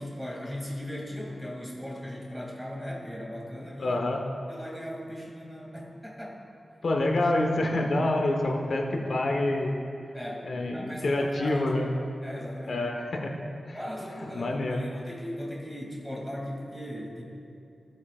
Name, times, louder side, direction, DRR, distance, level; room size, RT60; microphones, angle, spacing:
voice 1, 0.0-4.0 4.5-6.4 10.1-10.5 10.7-11.9 12.2-12.8 13.7-17.2, equal, ahead, -3 dB, 2.7 m, -38 dB
voice 2, 3.8-4.2 6.8-9.7 10.5-11.9 12.7-13.3 13.7-13.8 14.2-14.8, left 2 dB, 70° left, 1 dB, 1.3 m, -27 dB
17.5 x 9.5 x 2.5 m, 2.6 s
cardioid pair, 60°, 0 cm